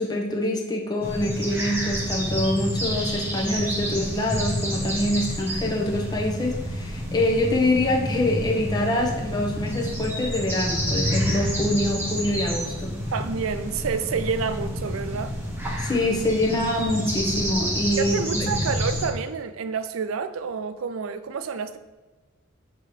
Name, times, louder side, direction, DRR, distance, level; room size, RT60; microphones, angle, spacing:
voice 1, 0.0-12.9 15.8-18.5, left 1 dB, 20° left, 0.9 m, -25 dB
sound 1, 1.0-19.1, equal, 10° right, 1.1 m, -29 dB
voice 2, 13.1-15.4 18.0-21.8, right 5 dB, 85° right, 0.4 m, -29 dB
6.7 x 3.0 x 4.7 m
head